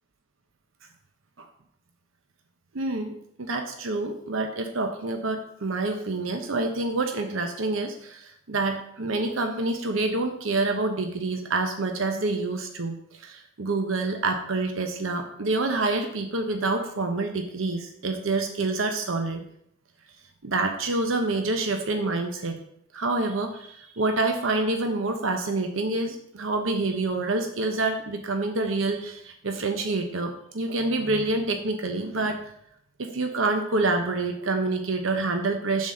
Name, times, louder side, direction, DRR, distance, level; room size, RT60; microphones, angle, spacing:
voice 1, 2.7-19.4 20.4-22.6 22.9-32.4 33.0-35.9, right 2 dB, 85° right, 5 dB, 0.9 m, -27 dB
7.2 x 4.1 x 6.4 m, 0.70 s
head